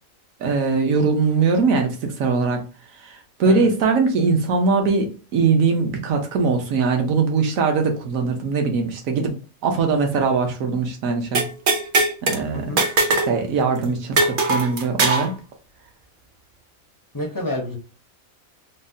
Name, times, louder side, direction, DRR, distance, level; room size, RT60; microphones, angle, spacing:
voice 1, 0.4-2.6 3.4-9.3 9.6-11.4 12.2-12.6 13.1-15.3, right 4 dB, 75° right, 3 dB, 1.2 m, -21 dB
sound 1, 11.3-12.4 12.8-13.3 13.6-13.7 14.2-15.3, right 3 dB, 60° right, 0.5 m, -20 dB
voice 2, 17.1-17.8, left 1 dB, 35° left, 0 dB, 0.3 m, -28 dB
3.9 x 2.1 x 2.6 m, 0.34 s
omnidirectional pair, 1.5 m